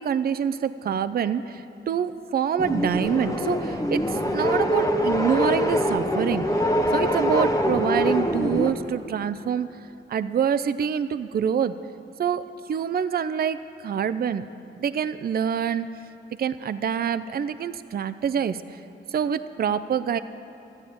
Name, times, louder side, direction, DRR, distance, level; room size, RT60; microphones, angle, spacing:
voice 1, 0.0-6.4 6.9-9.7 10.1-11.8 12.2-14.4 14.8-15.9 16.4-18.8 19.1-20.2, right 8 dB, 50° right, 12 dB, 0.4 m, -26 dB
sound 1, 2.6-8.7, equal, 15° left, 1.0 m, -24 dB
14.0 x 9.1 x 8.5 m, 2.9 s
wide cardioid pair, 120°, 20 cm